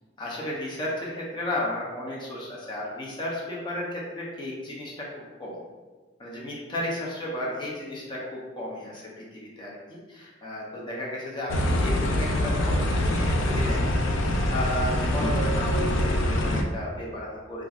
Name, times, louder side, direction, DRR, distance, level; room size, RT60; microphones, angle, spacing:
voice 1, 0.2-5.1 5.4-5.6 6.2-17.7, left 1 dB, 25° left, -4 dB, 0.6 m, -34 dB
sound 1, 11.5-16.6, left 1 dB, 85° left, 0.3 m, -24 dB
2.9 x 2.4 x 2.4 m, 1.3 s
head